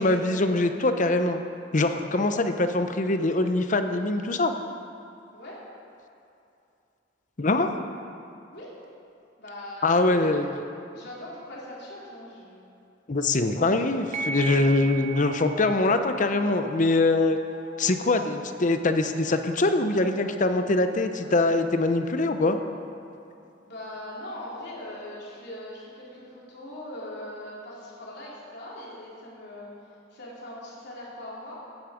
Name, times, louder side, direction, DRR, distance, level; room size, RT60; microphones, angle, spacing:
voice 1, 0.0-1.4 1.7-4.5 7.4-7.7 9.8-10.5 13.1-17.4 17.8-22.6, left 2 dB, 40° left, 8 dB, 0.7 m, -23 dB
voice 2, 5.3-5.6 8.5-8.8 9.4-10.6 10.9-12.6 23.6-31.6, left 1 dB, 60° left, -5 dB, 3.5 m, -41 dB
sound 1, 14.1-23.1, right 2 dB, 35° right, 0.7 m, -41 dB
15.5 x 9.5 x 5.1 m, 2.7 s
head